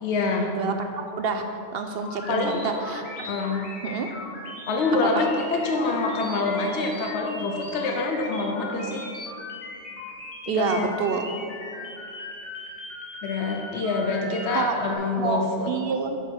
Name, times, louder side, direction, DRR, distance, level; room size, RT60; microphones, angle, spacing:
voice 1, 0.0-0.5 2.3-2.7 3.3-3.7 4.7-9.0 10.5-11.2 13.2-15.7, left 3 dB, 70° left, 2 dB, 1.0 m, -26 dB
voice 2, 0.5-1.4 1.7-3.3 3.8-4.1 5.1-5.3 10.5-11.3 14.5-14.7 15.2-16.2, right 5 dB, 65° right, 6 dB, 0.7 m, -28 dB
sound 1, 2.0-14.9, left 2 dB, 90° left, 1.7 m, -39 dB
7.9 x 6.7 x 4.4 m, 2.6 s
omnidirectional pair, 1.2 m